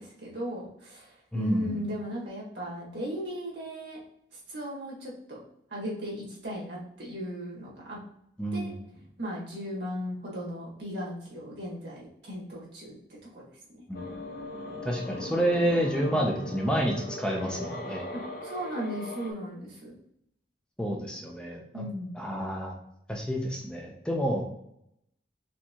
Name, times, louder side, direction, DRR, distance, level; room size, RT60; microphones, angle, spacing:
voice 1, 0.0-4.0 4.5-5.4 5.7-8.0 8.5-8.7 9.2-12.9 13.3-13.4 13.7-13.8 18.1-19.9 21.7-22.2, equal, 80° right, -4 dB, 1.7 m, -36 dB
voice 2, 1.3-1.8 8.4-8.7 13.9-14.0 14.8-18.0 20.8-21.8 22.1-22.7 23.1-24.4, equal, 5° left, 0 dB, 0.5 m, -29 dB
sound 1, 13.9-19.3, left 1 dB, 55° left, 0.8 m, -39 dB
4.4 x 3.6 x 2.8 m, 0.75 s
head